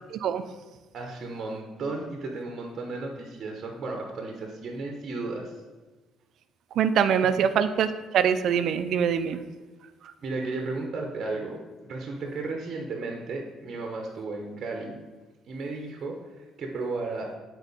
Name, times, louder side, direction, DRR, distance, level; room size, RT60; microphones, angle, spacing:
voice 1, 0.1-0.4 6.8-7.9 8.1-9.4, right 8 dB, 65° right, 10 dB, 0.5 m, -23 dB
voice 2, 0.9-5.5 6.9-7.0 10.2-15.0 15.5-16.2 16.6-17.3, right 3 dB, 45° right, 2 dB, 1.0 m, -34 dB
9.0 x 4.5 x 4.1 m, 1.2 s
cardioid pair, 110°, 0 cm